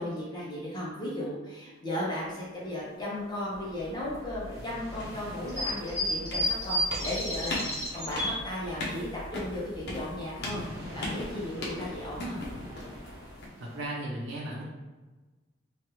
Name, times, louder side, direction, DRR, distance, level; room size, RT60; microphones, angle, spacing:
voice 1, 0.0-12.4, left 1 dB, 25° left, -6 dB, 0.7 m, -35 dB
sound 1, 3.5-13.5, left 1 dB, 60° left, 0.7 m, -40 dB
sound 2, 4.5-8.3 10.1-13.8, equal, 15° right, 0.9 m, -35 dB
voice 2, 13.6-14.6, right 1 dB, 90° right, -5 dB, 0.6 m, -35 dB
3.1 x 2.3 x 3.0 m, 1.2 s
head